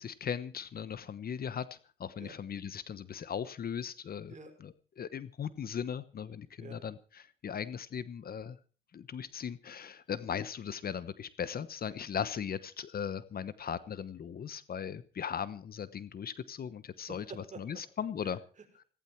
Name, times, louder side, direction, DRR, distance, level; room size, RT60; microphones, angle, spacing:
voice 1, 0.0-1.7 2.0-4.3 5.0-8.6 8.9-17.2 17.6-18.4, left 8 dB, 50° left, 16 dB, 1.0 m, -38 dB
voice 2, 17.0-17.8 18.2-18.9, right 4 dB, 35° right, 4 dB, 5.4 m, -49 dB
17.5 x 16.0 x 4.5 m, 0.38 s
cardioid pair, 90°, 20 cm